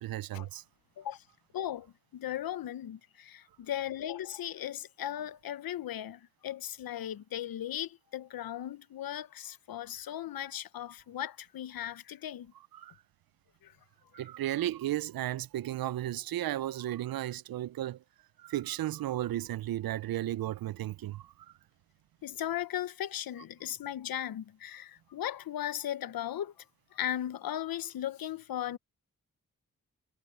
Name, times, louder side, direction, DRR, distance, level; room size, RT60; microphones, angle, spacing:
voice 1, 0.0-0.6 12.7-13.0 14.1-18.0 18.4-21.5, right 13 dB, 80° right, 0.6 m, -34 dB
voice 2, 1.5-12.5 13.6-13.7 22.2-26.5 26.9-28.8, left 11 dB, 80° left, 1.0 m, -37 dB
cardioid pair, 45°, 35 cm